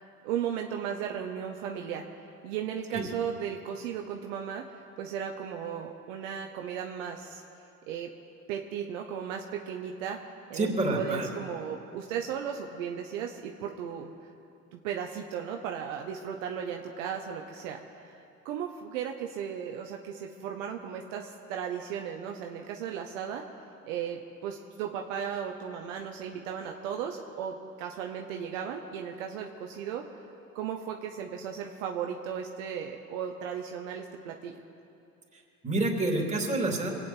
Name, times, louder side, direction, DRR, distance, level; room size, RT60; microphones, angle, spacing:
voice 1, 0.0-2.1 2.4-7.4 7.9-8.1 8.5-10.2 10.5-10.7 10.9-14.1 14.7-23.5 23.9-30.1 30.5-34.6, right 8 dB, 60° right, 2 dB, 1.2 m, -36 dB
voice 2, 10.5-11.3 35.6-36.9, right 2 dB, 15° right, -1 dB, 3.5 m, -28 dB
26.5 x 9.0 x 4.5 m, 2.7 s
figure-of-eight pair, 60°, 42 cm